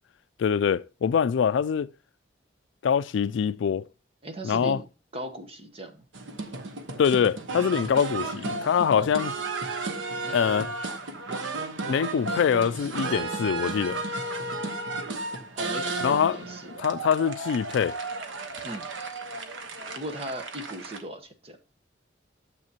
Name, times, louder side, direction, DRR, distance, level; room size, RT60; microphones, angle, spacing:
voice 1, 0.4-1.9 2.8-3.9 4.4-4.8 7.0-9.3 10.3-10.7 11.9-14.0 16.0-16.4 16.8-18.0, left 7 dB, 75° left, 0.3 m, -24 dB
voice 2, 4.2-4.8 5.1-6.0 8.9-9.1 10.2-10.6 15.6-17.1 18.6-18.9 19.9-21.6, right 1 dB, 30° right, 1.1 m, -38 dB
sound 1, 6.1-21.0, right 3 dB, 90° right, 1.2 m, -34 dB
12.5 x 7.5 x 2.9 m
head